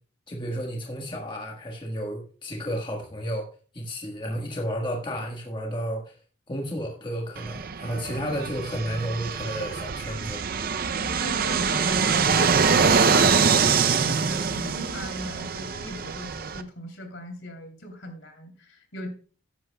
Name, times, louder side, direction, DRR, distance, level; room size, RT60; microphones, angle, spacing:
voice 1, 0.3-3.5 3.7-6.2 6.5-10.4, equal, 25° left, 0 dB, 1.4 m, -32 dB
Fixed-wing aircraft airplane, 7.4-16.6, right 5 dB, 45° right, 0.5 m, -24 dB
voice 2, 10.8-19.1, left 1 dB, 70° left, 4 dB, 3.0 m, -39 dB
14.0 x 10.5 x 2.2 m, 0.40 s
head